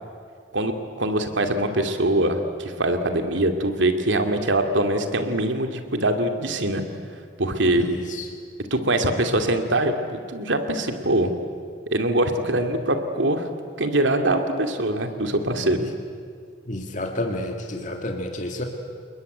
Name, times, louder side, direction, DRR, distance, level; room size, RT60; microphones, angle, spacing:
voice 1, 1.0-6.8 7.4-7.9 8.7-11.3 11.9-13.5 13.8-15.8, right 1 dB, 85° right, 6 dB, 2.5 m, -23 dB
voice 2, 7.7-8.3 15.6-15.9 16.6-18.6, left 1 dB, 45° left, 3 dB, 2.2 m, -30 dB
28.5 x 21.0 x 9.2 m, 2.2 s
head